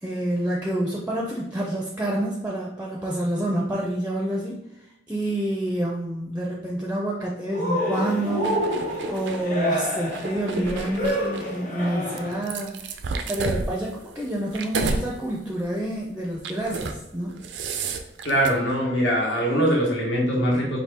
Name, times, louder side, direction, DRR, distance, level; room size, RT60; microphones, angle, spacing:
voice 1, 0.0-8.6 9.1-12.9 13.3-17.4, right 1 dB, 10° right, -2 dB, 0.4 m, -28 dB
Cheering, 7.5-12.5, equal, 40° left, 1.0 m, -28 dB
sound 1, 8.4-9.4 10.0-11.6 12.2-15.1 15.5-15.7 16.4-17.0 17.3-18.5, right 4 dB, 85° right, 0.4 m, -31 dB
voice 2, 18.2-20.8, equal, 90° left, -2 dB, 1.2 m, -22 dB
4.3 x 2.7 x 3.4 m, 0.85 s
head